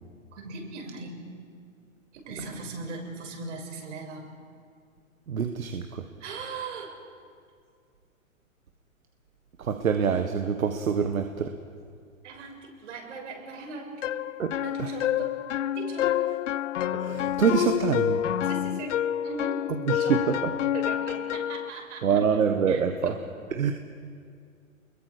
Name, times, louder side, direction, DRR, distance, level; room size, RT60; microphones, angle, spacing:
voice 1, 0.3-1.3 2.1-4.3 6.2-7.1 12.2-14.0 14.6-15.4 15.7-16.4 18.4-20.4 20.7-22.2 22.7-23.2, right 3 dB, 60° right, 1 dB, 6.2 m, -39 dB
voice 2, 5.3-6.0 9.6-11.5 14.4-14.9 16.9-18.2 19.9-20.4 22.0-23.2 23.5-23.7, right 7 dB, 80° right, 6 dB, 1.6 m, -25 dB
sound 1, 14.0-21.7, left 11 dB, 60° left, 0.8 m, -28 dB
30.0 x 22.0 x 5.0 m, 2.2 s
hypercardioid pair, 125°, 41 cm